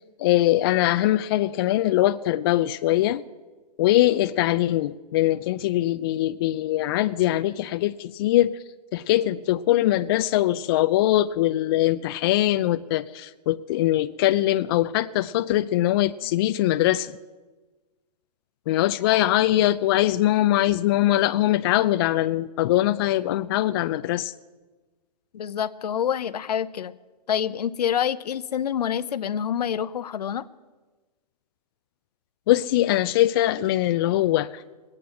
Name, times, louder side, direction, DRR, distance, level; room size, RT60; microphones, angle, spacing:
voice 1, 0.2-3.2 3.8-8.5 8.9-17.1 18.7-24.3 32.5-34.5, left 14 dB, 35° left, 12 dB, 0.4 m, -22 dB
voice 2, 25.3-26.9 27.3-30.5, left 9 dB, 70° left, 15 dB, 0.7 m, -27 dB
19.5 x 8.6 x 7.7 m, 1.3 s
hypercardioid pair, 135°, 21 cm